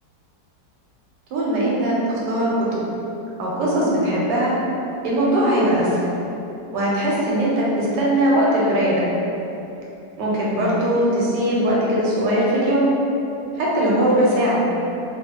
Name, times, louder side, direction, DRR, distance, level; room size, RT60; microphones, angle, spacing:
voice 1, 1.3-2.8 3.4-4.5 5.0-6.0 6.7-9.0 10.2-12.8 13.6-14.6, right 1 dB, 90° right, -5 dB, 1.3 m, -20 dB
2.9 x 2.4 x 2.7 m, 2.9 s
omnidirectional pair, 1.8 m